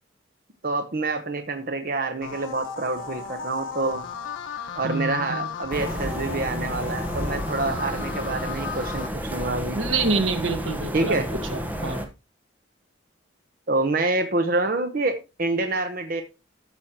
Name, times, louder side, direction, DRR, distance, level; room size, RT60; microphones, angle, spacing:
voice 1, 0.6-4.0 4.8-9.8 10.9-11.3 13.7-16.2, right 2 dB, 45° right, 6 dB, 0.8 m, -27 dB
sound 1, 2.2-9.1, left 5 dB, 75° left, 1.2 m, -35 dB
voice 2, 4.8-5.5 9.7-12.0, right 3 dB, 80° right, 6 dB, 1.5 m, -27 dB
sound 2, 5.7-12.1, equal, 10° right, 1.0 m, -31 dB
13.0 x 6.3 x 2.9 m, 0.28 s
head